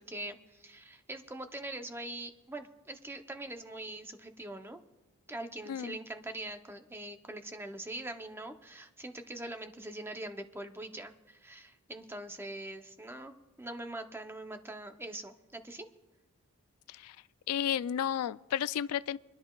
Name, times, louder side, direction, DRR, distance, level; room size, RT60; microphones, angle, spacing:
voice 1, 0.0-4.8 5.3-15.9, right 1 dB, 10° right, 0.7 m, -43 dB
voice 2, 17.5-19.2, left 9 dB, 80° left, 0.3 m, -32 dB
27.0 x 11.0 x 2.3 m
head